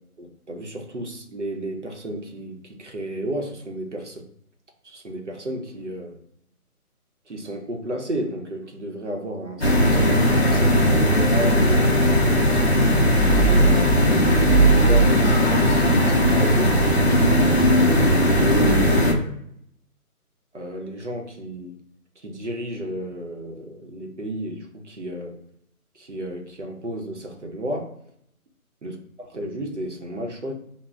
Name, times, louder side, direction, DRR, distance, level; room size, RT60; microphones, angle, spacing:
voice 1, 0.2-4.3 4.8-6.2 7.3-11.9 12.2-12.8 13.4-13.9 14.1-16.8 17.6-19.4 20.5-21.7 22.2-25.4 26.0-27.9 28.8-30.5, right 1 dB, 50° right, 2 dB, 0.6 m, -32 dB
sound 1, 9.6-19.1, equal, 45° left, 0.5 m, -17 dB
2.2 x 2.1 x 3.5 m, 0.72 s
figure-of-eight pair, 180°, 45 cm